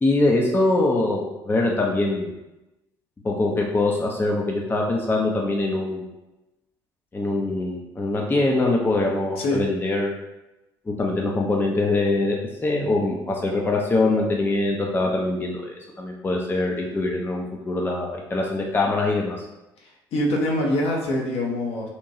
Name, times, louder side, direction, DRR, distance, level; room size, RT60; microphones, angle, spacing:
voice 1, 0.0-2.3 3.2-6.1 7.1-10.1 10.9-12.4 12.6-19.5, left 2 dB, 15° left, -1 dB, 0.4 m, -23 dB
voice 2, 19.8-21.9, left 1 dB, 55° left, -1 dB, 0.7 m, -24 dB
2.9 x 2.2 x 2.6 m, 0.98 s
figure-of-eight pair, 55°, 13 cm